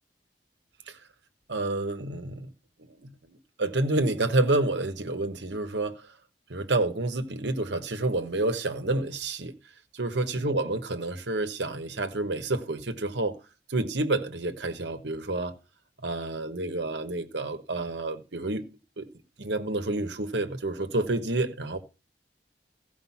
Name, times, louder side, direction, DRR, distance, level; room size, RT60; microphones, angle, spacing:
voice 1, 1.5-2.5 2.9-6.1 6.5-9.5 9.9-13.4 13.7-15.5 16.0-18.7 19.0-19.1 19.4-21.8, right 2 dB, 85° right, 1.3 m, -29 dB
15.5 x 5.2 x 5.8 m
head